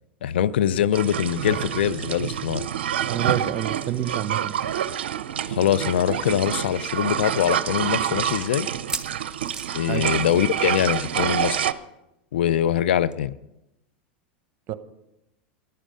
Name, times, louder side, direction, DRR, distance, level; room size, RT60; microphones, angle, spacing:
voice 1, 0.2-2.7 5.5-8.7 9.7-11.7 12.3-13.3, left 10 dB, 75° left, 0.5 m, -23 dB
sound 1, 0.9-11.7, right 10 dB, 80° right, 0.5 m, -27 dB
voice 2, 3.1-4.6 9.9-10.1 14.7-14.8, right 11 dB, 45° right, 0.9 m, -28 dB
sound 2, 8.7-10.8 11.1-11.3 11.6-11.7 13.1-13.2, right 4 dB, 10° right, 1.0 m, -36 dB
14.0 x 11.0 x 5.2 m
hypercardioid pair, 95°, 6 cm